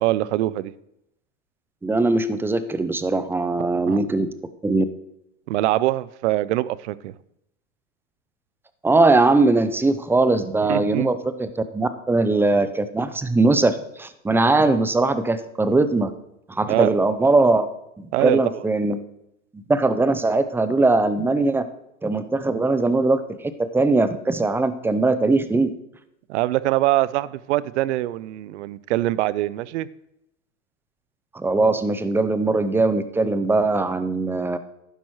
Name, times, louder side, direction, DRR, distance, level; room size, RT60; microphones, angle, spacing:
voice 1, 0.0-0.7 3.6-4.0 5.5-7.1 10.7-11.1 16.7-16.9 18.1-18.4 26.3-29.9, right 16 dB, 65° right, 19 dB, 0.5 m, -23 dB
voice 2, 1.8-4.3 4.6-4.9 8.8-16.1 16.5-17.7 18.0-19.0 19.5-21.6 22.0-25.7 31.3-34.6, right 2 dB, 5° right, 12 dB, 0.5 m, -20 dB
11.5 x 10.0 x 3.1 m, 0.81 s
hypercardioid pair, 100°, 37 cm